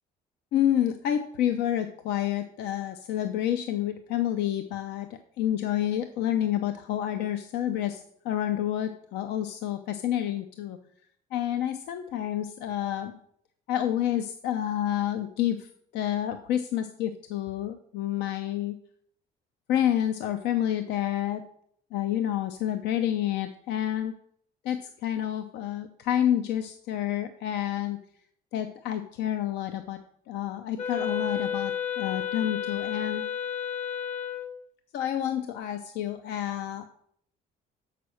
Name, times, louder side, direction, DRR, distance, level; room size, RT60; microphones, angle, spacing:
voice 1, 0.5-5.1 5.4-10.8 11.3-13.1 13.7-18.8 19.7-21.4 21.9-24.1 24.6-28.0 28.5-30.0 30.3-33.3 34.9-36.9, left 11 dB, 85° left, 8 dB, 0.7 m, -29 dB
Wind instrument woodwind instrument, 30.8-34.6, left 8 dB, 45° left, 0.9 m, -32 dB
7.0 x 5.9 x 6.3 m, 0.66 s
cardioid pair, 110°, 17 cm